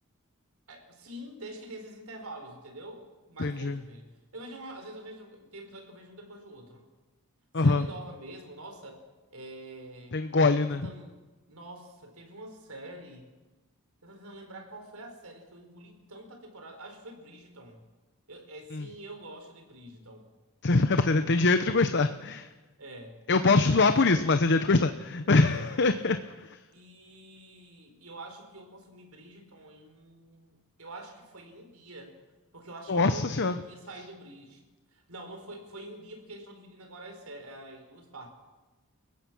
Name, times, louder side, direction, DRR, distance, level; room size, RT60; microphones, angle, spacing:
voice 1, 0.7-6.8 7.6-9.0 9.3-10.1 10.6-11.2 11.5-13.3 14.0-17.8 18.3-20.3 22.8-23.2 23.6-24.2 25.4-26.2 26.7-32.2 32.5-34.6 34.9-38.3, right 1 dB, 75° right, 4 dB, 4.6 m, -46 dB
voice 2, 3.4-3.8 7.5-7.9 10.1-10.9 18.7-18.9 20.6-22.5 23.3-26.2 32.9-33.5, left 3 dB, 55° left, 9 dB, 0.8 m, -23 dB
29.5 x 16.0 x 6.2 m, 1.2 s
head